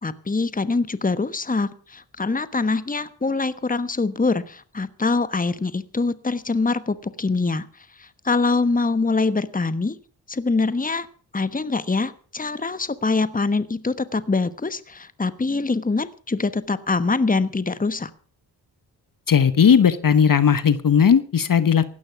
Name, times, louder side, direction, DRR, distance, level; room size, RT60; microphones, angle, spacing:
voice 1, 0.0-7.7 8.2-10.0 10.3-11.1 11.3-18.1, left 3 dB, 20° left, 14 dB, 1.2 m, -24 dB
voice 2, 19.3-21.8, left 7 dB, 45° left, 14 dB, 1.1 m, -17 dB
16.5 x 11.5 x 5.9 m, 0.42 s
supercardioid pair, 45°, 44 cm